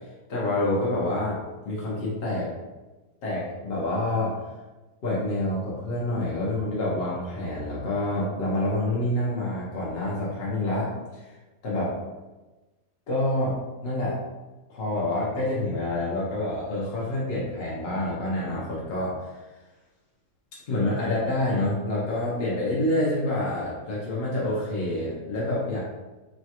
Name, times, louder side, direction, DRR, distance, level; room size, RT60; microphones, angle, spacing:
voice 1, 0.3-1.4 1.6-2.5 3.2-4.4 5.0-11.3 11.6-12.0 13.1-13.5 13.8-14.2 14.7-19.3 20.7-25.8, left 1 dB, 60° left, -6 dB, 0.6 m, -27 dB
3.1 x 2.2 x 2.8 m, 1.2 s
omnidirectional pair, 1.7 m